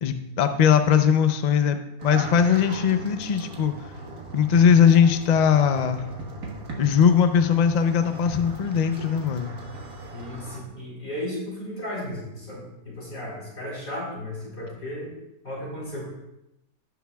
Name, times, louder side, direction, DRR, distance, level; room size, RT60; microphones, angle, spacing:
voice 1, 0.0-3.7 4.3-6.0 6.8-9.5, left 7 dB, 75° left, 8 dB, 0.4 m, -20 dB
sound 1, 2.0-10.6, right 2 dB, 75° right, 1.9 m, -38 dB
voice 2, 10.1-15.1 15.4-16.1, left 1 dB, 45° left, -7 dB, 4.4 m, -35 dB
17.0 x 7.0 x 2.3 m, 0.86 s
omnidirectional pair, 1.6 m